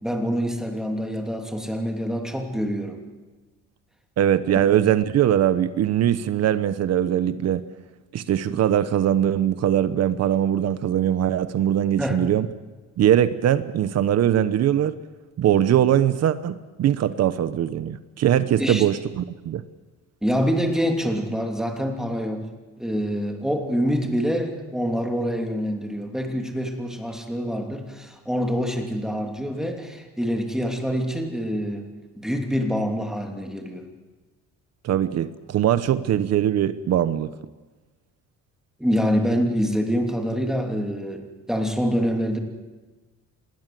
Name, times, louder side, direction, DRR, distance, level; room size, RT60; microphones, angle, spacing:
voice 1, 0.0-3.0 12.0-12.2 18.6-18.8 20.2-22.5 22.8-33.9 38.8-42.4, equal, ahead, 3 dB, 3.0 m, -26 dB
voice 2, 4.2-7.6 8.1-12.5 13.0-15.0 15.4-19.6 34.8-37.3, right 10 dB, 60° right, 13 dB, 1.1 m, -21 dB
26.5 x 20.5 x 7.7 m, 1.3 s
cardioid pair, 145°, 30 cm